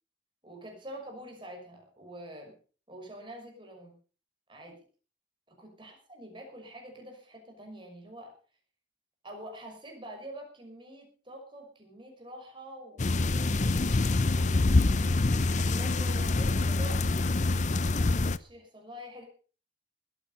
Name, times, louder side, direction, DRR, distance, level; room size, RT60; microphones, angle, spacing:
voice 1, 0.4-2.5 2.9-4.0 4.5-4.8 5.6-8.3 9.2-14.7 15.2-19.2, equal, 25° right, 2 dB, 5.8 m, -46 dB
sound 1, 13.0-18.4, left 2 dB, 40° left, 0.6 m, -26 dB
20.0 x 9.4 x 5.5 m, 0.40 s
head